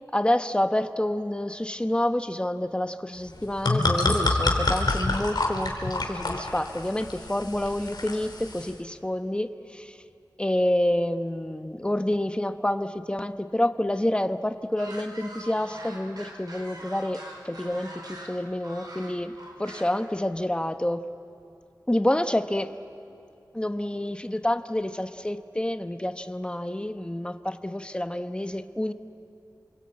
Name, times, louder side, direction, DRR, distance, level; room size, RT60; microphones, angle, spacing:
voice 1, 0.1-9.9 10.4-21.1 21.9-22.7 23.5-28.9, left 1 dB, 15° left, 8 dB, 1.1 m, -28 dB
sound 1, 3.3-8.7, left 2 dB, 75° left, 3.3 m, -27 dB
sound 2, 14.8-20.1, right 1 dB, 65° right, 4.8 m, -43 dB
28.0 x 22.0 x 8.8 m, 2.6 s
wide cardioid pair, 75°, 7 cm